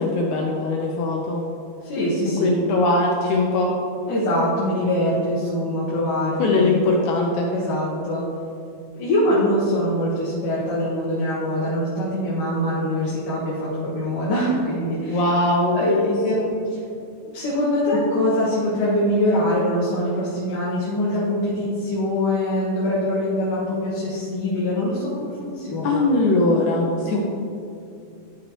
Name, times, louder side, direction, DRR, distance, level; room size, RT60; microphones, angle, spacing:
voice 1, 0.0-1.4 2.3-3.8 6.4-7.5 15.1-16.5 25.8-27.2, left 2 dB, 90° left, -1 dB, 1.7 m, -21 dB
voice 2, 1.8-2.5 4.1-6.7 7.5-8.3 8.9-15.2 15.7-16.4 16.7-16.8 17.3-26.0, left 1 dB, 65° left, -9 dB, 2.9 m, -23 dB
12.5 x 5.4 x 3.1 m, 2.5 s
omnidirectional pair, 4.4 m